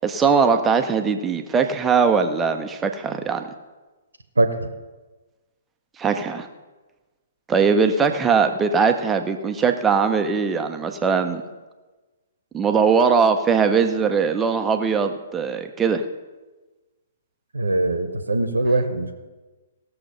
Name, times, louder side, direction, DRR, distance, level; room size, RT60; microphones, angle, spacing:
voice 1, 0.0-3.5 6.0-6.5 7.5-11.4 12.5-16.0, right 5 dB, 15° right, 6 dB, 0.8 m, -20 dB
voice 2, 4.4-4.7 17.5-19.1, right 2 dB, 75° right, 7 dB, 1.1 m, -22 dB
17.0 x 6.7 x 5.4 m, 1.2 s
figure-of-eight pair, 120°, 0 cm